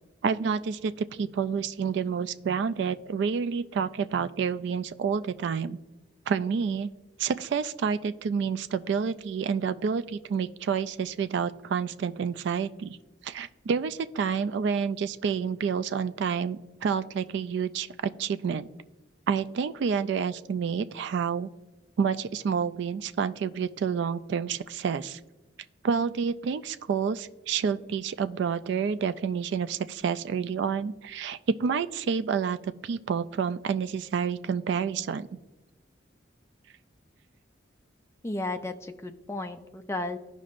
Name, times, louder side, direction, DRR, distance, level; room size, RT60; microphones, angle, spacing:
voice 1, 0.2-5.8 6.3-6.9 7.2-13.0 13.2-18.7 19.3-21.5 22.0-25.2 25.8-35.3, right 6 dB, 65° right, 14 dB, 0.3 m, -29 dB
voice 2, 38.2-40.2, left 2 dB, 15° left, 6 dB, 0.4 m, -34 dB
14.0 x 5.2 x 2.5 m, 1.1 s
head